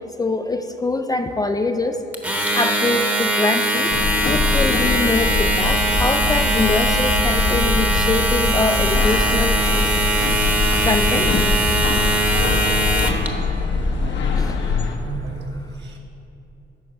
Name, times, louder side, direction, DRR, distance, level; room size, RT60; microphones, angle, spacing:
voice 1, 0.0-2.0 2.5-3.9 4.2-9.6 10.8-11.3 14.4-14.6, left 3 dB, 20° left, 7 dB, 0.3 m, -23 dB
Domestic sounds home sounds, 2.1-13.3, right 1 dB, 10° right, 0.9 m, -21 dB
sound 1, 3.9-15.0, left 4 dB, 65° left, 0.9 m, -23 dB
voice 2, 13.7-14.4 15.0-16.0, right 1 dB, 65° right, 0 dB, 1.4 m, -34 dB
10.0 x 4.3 x 5.8 m, 2.8 s
cardioid pair, 90°, 20 cm